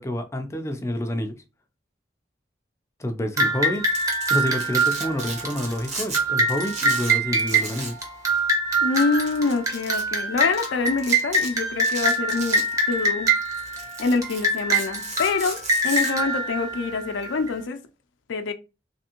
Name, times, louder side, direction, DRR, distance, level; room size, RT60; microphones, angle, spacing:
voice 1, 0.0-1.4 3.0-3.8 4.3-8.0, left 1 dB, 15° left, 0.4 m, -28 dB
sound 1, 3.4-17.5, right 2 dB, 20° right, 0.8 m, -24 dB
Domestic sounds home sounds, 3.7-6.2 6.5-8.0 8.3-8.4 8.9-10.0 10.5-10.7 11.0-11.5 11.8-13.1 13.5-16.1, right 3 dB, 40° right, 1.1 m, -35 dB
voice 2, 8.8-13.3 14.0-17.8 18.3-18.5, left 4 dB, 90° left, 0.5 m, -26 dB
3.5 x 3.3 x 2.9 m
head